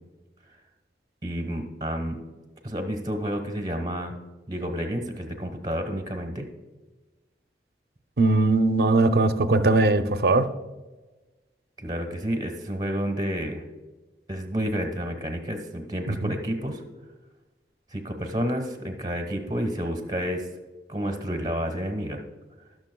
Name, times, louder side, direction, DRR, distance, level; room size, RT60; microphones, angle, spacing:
voice 1, 1.2-2.2 2.6-4.2 4.5-6.5 11.8-13.6 14.3-16.8 17.9-20.5 20.9-22.2, equal, 25° right, 3 dB, 1.1 m, -30 dB
voice 2, 8.2-10.5 16.1-16.3, right 2 dB, 60° right, 9 dB, 0.5 m, -20 dB
18.5 x 6.4 x 2.2 m, 1.2 s
head